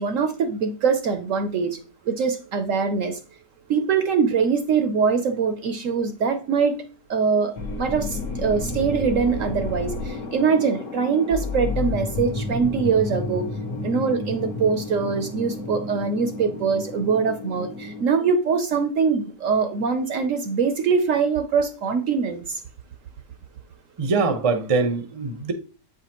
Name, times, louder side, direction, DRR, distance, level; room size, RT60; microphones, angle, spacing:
voice 1, 0.0-1.8 2.1-3.2 3.7-6.8 7.1-7.5 7.8-13.4 13.8-22.6, right 5 dB, 65° right, 0.9 m, -23 dB
sound 1, 7.6-18.0, left 3 dB, 60° left, 1.1 m, -31 dB
voice 2, 24.0-25.5, right 4 dB, 30° right, 0.6 m, -23 dB
8.2 x 4.9 x 2.9 m
omnidirectional pair, 1.7 m